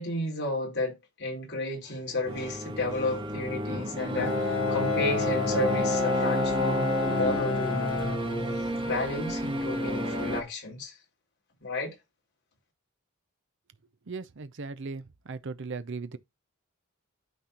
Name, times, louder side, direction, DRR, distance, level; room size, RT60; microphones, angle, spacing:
voice 1, 0.0-8.0 8.9-10.9 11.6-11.9, left 2 dB, 55° left, 4.1 m, -32 dB
sound 1, 2.3-10.4, equal, 25° right, 1.7 m, -30 dB
Bowed string instrument, 4.1-9.0, left 5 dB, 70° left, 1.4 m, -30 dB
voice 2, 14.1-16.2, right 4 dB, 60° right, 0.7 m, -38 dB
12.5 x 4.3 x 3.0 m
head